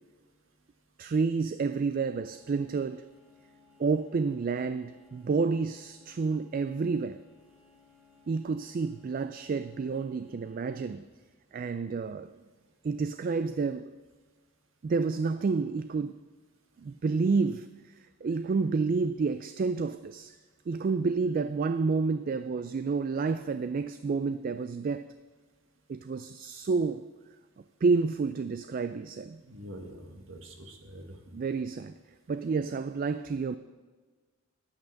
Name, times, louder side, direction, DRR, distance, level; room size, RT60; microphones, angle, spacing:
voice 1, 1.0-3.1 3.8-7.2 8.3-11.0 11.5-12.3 12.8-13.9 14.8-16.2 16.8-17.7 18.2-20.4 20.7-25.0 25.9-27.1 27.8-29.4 31.3-31.9 32.3-33.6, right 4 dB, 45° right, 0.3 m, -29 dB
sound 1, 2.1-11.0, left 5 dB, 5° right, 2.1 m, -62 dB
voice 2, 29.4-31.2, right 1 dB, 70° right, 1.7 m, -45 dB
10.5 x 8.7 x 6.4 m
head